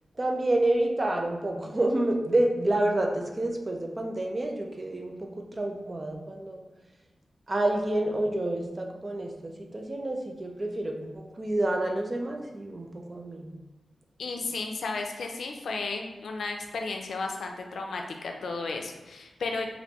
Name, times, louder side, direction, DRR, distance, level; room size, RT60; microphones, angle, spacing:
voice 1, 0.2-6.6 7.5-13.5, right 1 dB, 30° right, 1 dB, 0.5 m, -28 dB
voice 2, 14.2-19.7, left 3 dB, 80° left, 3 dB, 0.4 m, -34 dB
3.2 x 2.6 x 2.9 m, 1.2 s
wide cardioid pair, 105°, 0 cm